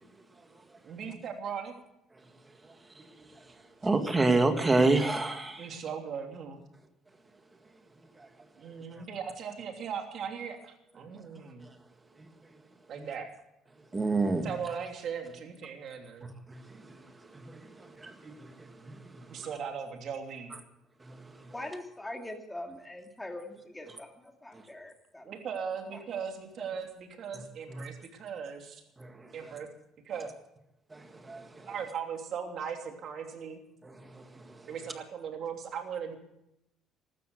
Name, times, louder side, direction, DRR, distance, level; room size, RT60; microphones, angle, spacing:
voice 1, 0.8-1.7 5.6-6.6 8.6-11.7 12.9-13.3 14.4-16.3 19.3-20.6 25.2-28.8 29.3-29.7 30.0-30.3 31.7-33.6 34.7-36.2, right 7 dB, 55° right, 3.0 m, -38 dB
voice 2, 3.8-5.6 13.9-14.5 18.0-18.1 31.2-31.4, right 2 dB, 20° right, 1.8 m, -25 dB
voice 3, 21.5-25.3 25.9-26.0, left 1 dB, 10° left, 2.4 m, -42 dB
15.5 x 12.5 x 6.5 m
cardioid pair, 120°, 0 cm